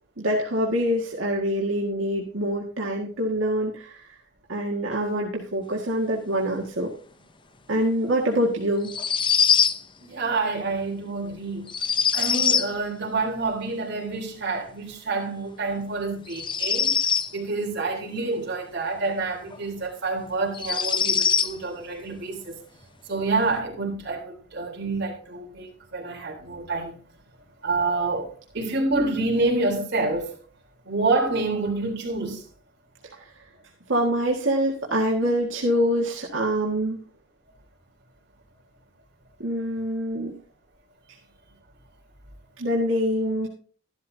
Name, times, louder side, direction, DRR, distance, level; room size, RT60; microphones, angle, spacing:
voice 1, 0.2-4.1 4.5-6.9 7.7-8.9 33.2-33.3 33.9-37.0 39.4-40.3 42.6-43.5, equal, 85° right, 1.9 m, -25 dB
powerful owl whistle, 8.8-9.8 11.7-12.7 16.3-17.3 19.5-19.6 20.5-21.5, left 7 dB, 25° left, 0.6 m, -22 dB
voice 2, 10.0-11.7 12.1-17.0 17.3-22.6 23.1-27.0 27.6-30.4 30.9-32.5, right 3 dB, 60° right, 3.7 m, -27 dB
13.0 x 12.0 x 2.8 m
head